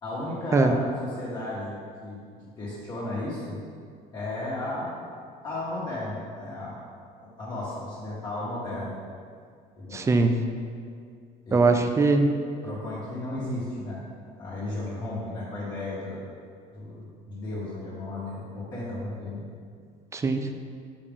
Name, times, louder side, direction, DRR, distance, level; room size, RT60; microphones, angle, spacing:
voice 1, 0.0-3.6 4.1-5.0 5.4-6.8 7.2-9.0 9.8-10.1 11.4-11.6 12.1-12.3 12.6-14.0 14.4-16.2 16.7-19.4, left 2 dB, 25° left, -10 dB, 1.7 m, -34 dB
voice 2, 9.9-10.3 11.5-12.3 20.1-20.5, right 3 dB, 15° right, 6 dB, 0.4 m, -21 dB
6.7 x 5.0 x 3.6 m, 2.2 s
cardioid pair, 145°, 17 cm